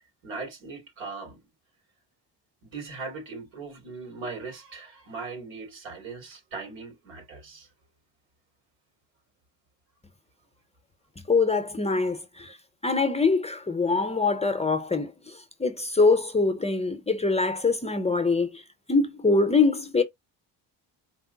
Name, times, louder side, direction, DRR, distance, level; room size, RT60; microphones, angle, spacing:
voice 1, 0.2-1.4 2.6-7.7, right 4 dB, 80° right, 3.1 m, -39 dB
voice 2, 11.3-12.6 12.8-18.6 18.9-20.0, left 3 dB, 15° left, 0.6 m, -24 dB
4.5 x 2.0 x 3.9 m
cardioid pair, 120°, 45 cm